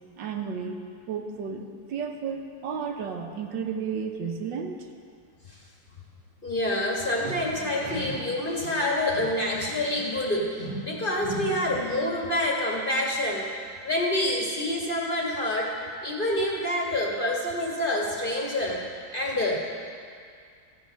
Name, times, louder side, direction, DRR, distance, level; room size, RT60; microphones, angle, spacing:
voice 1, 0.2-0.8 1.1-4.9, right 6 dB, 85° right, 3 dB, 1.7 m, -33 dB
voice 2, 6.4-13.5 13.8-15.8 16.0-18.8 19.1-19.6, left 1 dB, 30° left, -2 dB, 1.7 m, -27 dB
14.5 x 8.2 x 6.3 m, 2.2 s
omnidirectional pair, 1.9 m